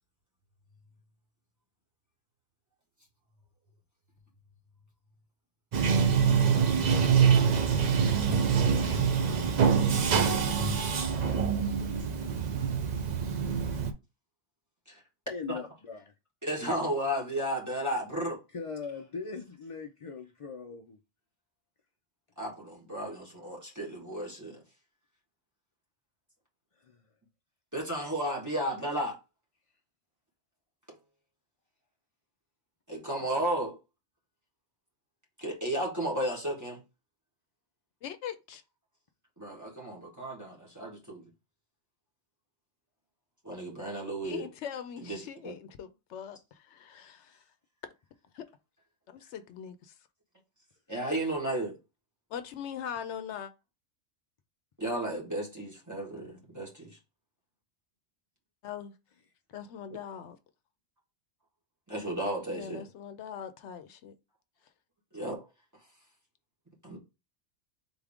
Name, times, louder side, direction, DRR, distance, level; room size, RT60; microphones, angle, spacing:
Bathtub (filling or washing), 5.7-13.9, right 6 dB, 50° right, 0.6 m, -25 dB
voice 1, 15.3-16.0 18.5-21.0 26.9-27.0, left 5 dB, 50° left, 0.4 m, -40 dB
voice 2, 16.4-18.4 22.4-24.6 27.7-29.1 32.9-33.8 35.4-36.8 39.4-41.3 43.4-44.5 45.0-45.5 50.9-51.8 54.8-57.0 61.9-62.8 65.1-65.4 66.8-67.0, right 1 dB, 15° right, 1.5 m, -33 dB
voice 3, 38.0-38.6 44.2-47.4 48.3-48.4 49.1-49.9 52.3-53.5 58.6-58.9 59.5-60.4 62.5-64.1, left 8 dB, 75° left, 0.9 m, -41 dB
3.9 x 3.6 x 3.5 m
omnidirectional pair, 1.2 m